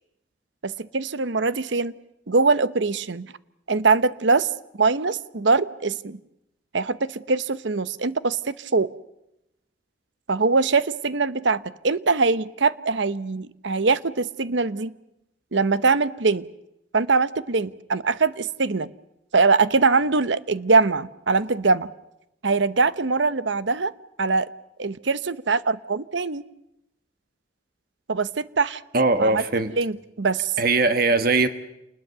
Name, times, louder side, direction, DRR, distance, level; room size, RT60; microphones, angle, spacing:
voice 1, 0.6-1.9 2.3-3.3 3.7-4.5 4.7-6.2 6.7-8.9 10.3-14.9 15.5-16.5 16.9-18.9 19.3-21.9 22.4-23.9 24.2-24.5 24.8-26.4 28.1-28.8 29.2-29.4 29.8-30.5, right 4 dB, 75° right, 15 dB, 0.9 m, -22 dB
voice 2, 28.9-29.7 30.6-31.5, right 3 dB, 50° right, 9 dB, 1.4 m, -20 dB
28.5 x 20.5 x 6.8 m, 0.86 s
head